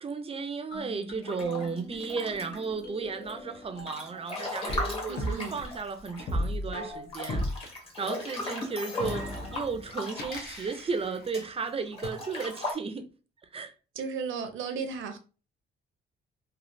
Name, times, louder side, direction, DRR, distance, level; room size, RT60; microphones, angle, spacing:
voice 1, 0.0-7.5 8.0-13.1 13.5-13.7, right 5 dB, 30° right, 0.5 m, -34 dB
sound 1, 0.7-4.2 4.7-7.7 8.6-11.5 12.0-12.1, equal, 55° left, 0.8 m, -37 dB
Breathing / Bathtub (filling or washing) / Splash splatter, 1.2-2.8 3.3-6.5 6.7-6.8 7.1-11.3 11.9-12.7, left 2 dB, 30° left, 1.2 m, -37 dB
voice 2, 5.1-5.6 13.9-15.2, right 5 dB, 80° right, 0.7 m, -34 dB
3.1 x 2.4 x 2.6 m
cardioid pair, 90°, 20 cm